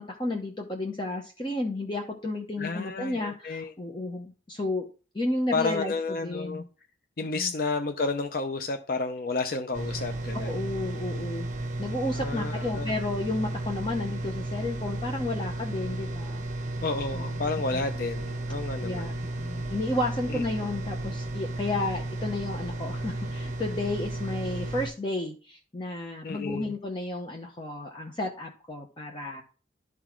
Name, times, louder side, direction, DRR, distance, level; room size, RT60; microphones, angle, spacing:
voice 1, 0.0-4.9 5.1-6.7 7.2-7.5 10.3-16.4 17.1-17.5 17.7-17.8 18.8-29.4, left 2 dB, 25° left, 2 dB, 0.9 m, -32 dB
voice 2, 2.6-3.7 5.5-6.6 7.2-10.5 12.1-12.9 16.8-19.1 20.3-20.4 26.2-26.7, left 3 dB, 50° left, 6 dB, 0.5 m, -31 dB
sound 1, 9.7-24.9, right 1 dB, 40° right, 1.1 m, -33 dB
11.5 x 4.1 x 4.5 m, 0.37 s
head